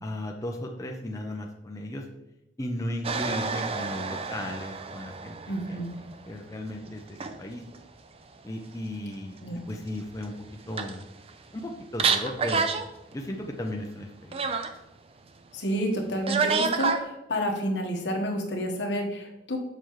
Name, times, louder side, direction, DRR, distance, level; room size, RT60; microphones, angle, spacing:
voice 1, 0.0-2.1 2.6-5.4 5.7-5.8 6.3-7.6 8.4-9.4 9.7-10.3 10.7-11.0 11.5-12.7 13.1-14.5, left 1 dB, 20° left, 1 dB, 0.5 m, -35 dB
sound 1, 3.0-6.3 6.9-7.4 7.7-7.8 10.2-10.3 10.5-11.3 11.6-11.7 12.0-12.9 13.1-13.2 14.3-14.7 16.3-17.0, right 5 dB, 30° right, 0.4 m, -29 dB
voice 2, 5.5-5.9 9.4-9.6 15.5-19.6, equal, 70° left, 2 dB, 1.2 m, -29 dB
6.8 x 5.6 x 3.1 m, 0.90 s
head